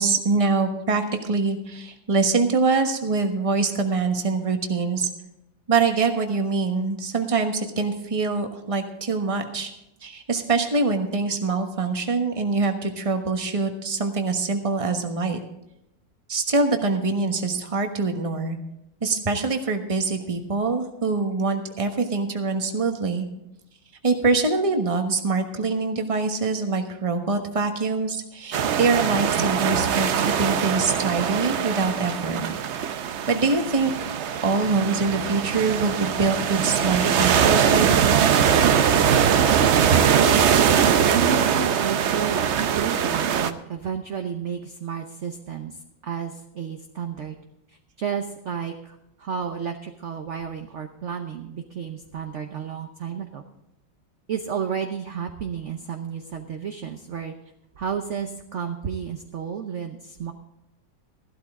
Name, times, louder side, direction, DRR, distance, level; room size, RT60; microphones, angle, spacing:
voice 1, 0.0-5.1 5.7-9.7 10.0-15.4 16.3-18.6 19.0-23.3 24.0-32.4 33.3-33.9 34.4-38.3, right 4 dB, 20° right, 5 dB, 1.1 m, -24 dB
sound 1, 28.5-43.5, right 8 dB, 75° right, 0.6 m, -21 dB
voice 2, 41.1-42.5 42.8-45.8 46.0-47.3 48.0-53.4 54.3-57.3 57.8-60.3, right 7 dB, 50° right, 5 dB, 0.9 m, -32 dB
15.0 x 12.0 x 3.7 m, 0.88 s
omnidirectional pair, 2.0 m